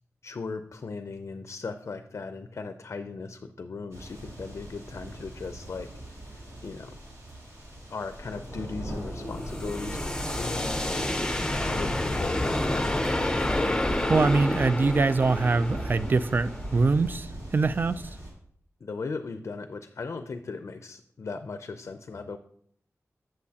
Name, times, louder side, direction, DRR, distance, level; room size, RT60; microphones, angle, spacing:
voice 1, 0.2-7.0 7.9-12.9 18.8-22.4, left 4 dB, 60° left, 8 dB, 0.5 m, -38 dB
sound 1, 3.9-18.3, right 1 dB, 70° right, 2.3 m, -40 dB
sound 2, 8.2-17.1, left 1 dB, 15° left, 0.6 m, -29 dB
voice 2, 14.1-18.0, right 3 dB, 40° right, 14 dB, 0.3 m, -24 dB
8.4 x 7.5 x 2.8 m, 0.64 s
wide cardioid pair, 105°, 5 cm